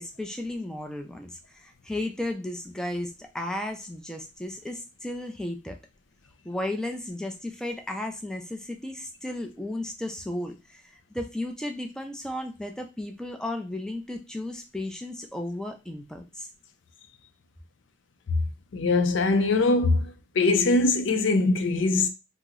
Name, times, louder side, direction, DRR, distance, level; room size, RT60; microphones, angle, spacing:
voice 1, 0.0-5.8 6.4-10.8 11.1-16.5, left 1 dB, 5° left, 0.3 m, -34 dB
voice 2, 18.7-22.1, left 3 dB, 85° left, 0.5 m, -22 dB
2.8 x 2.0 x 3.6 m
head